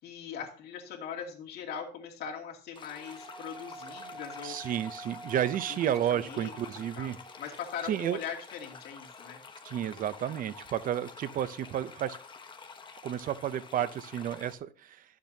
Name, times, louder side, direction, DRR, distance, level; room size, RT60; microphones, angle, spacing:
voice 1, 0.0-4.7 5.7-6.5 6.9-9.4, left 7 dB, 70° left, 2.5 m, -41 dB
sound 1, 2.7-14.5, left 5 dB, 30° left, 1.2 m, -49 dB
Wind instrument woodwind instrument, 2.9-8.4, right 2 dB, 5° right, 3.9 m, -48 dB
voice 2, 4.4-7.2 7.9-8.2 9.6-12.2 13.0-15.0, right 10 dB, 55° right, 0.6 m, -31 dB
11.5 x 7.4 x 2.8 m
cardioid pair, 110°, 17 cm